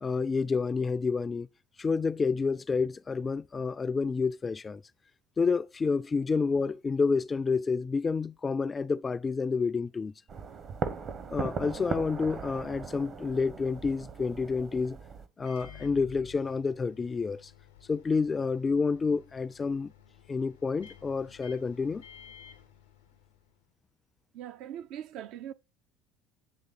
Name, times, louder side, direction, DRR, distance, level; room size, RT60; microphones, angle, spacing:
voice 1, 0.0-1.5 1.8-4.8 5.4-10.1 11.3-15.0 15.4-17.5 17.9-19.9 20.3-22.0, left 4 dB, 25° left, 0.3 m, -29 dB
sound 1, 10.3-15.3, right 5 dB, 45° right, 0.9 m, -38 dB
Microwave oven, 15.4-23.6, left 8 dB, 85° left, 0.7 m, -53 dB
voice 2, 24.3-25.5, right 10 dB, 65° right, 0.4 m, -41 dB
8.4 x 3.2 x 4.0 m
hypercardioid pair, 65°, 0 cm